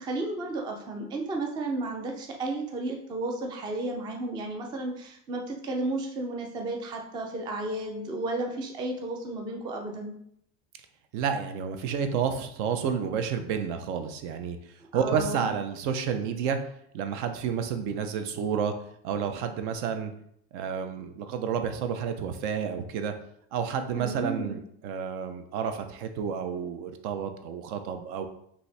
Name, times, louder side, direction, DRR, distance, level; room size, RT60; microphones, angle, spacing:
voice 1, 0.0-10.1 14.9-15.5 23.9-24.6, right 2 dB, 15° right, 2 dB, 0.3 m, -33 dB
voice 2, 11.1-14.6 14.9-16.6 16.9-18.7 19.0-20.1 20.5-23.1 23.5-28.3, right 7 dB, 65° right, 7 dB, 0.7 m, -30 dB
5.3 x 2.7 x 3.3 m, 0.70 s
cardioid pair, 150°, 36 cm